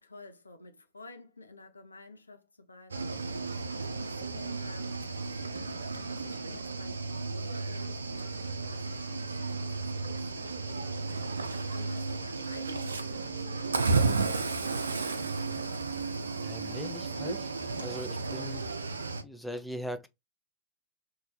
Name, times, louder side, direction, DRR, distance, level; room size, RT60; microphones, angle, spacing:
voice 1, 0.0-11.0 11.7-15.5, left 3 dB, 80° left, 0.4 m, -51 dB
Cricket / Waves surf, 2.9-19.2, right 3 dB, 75° right, 0.4 m, -33 dB
voice 2, 16.4-17.5 17.8-18.6 19.2-20.1, equal, ahead, 0.4 m, -40 dB
2.6 x 2.2 x 3.1 m
figure-of-eight pair, 90°, 0 cm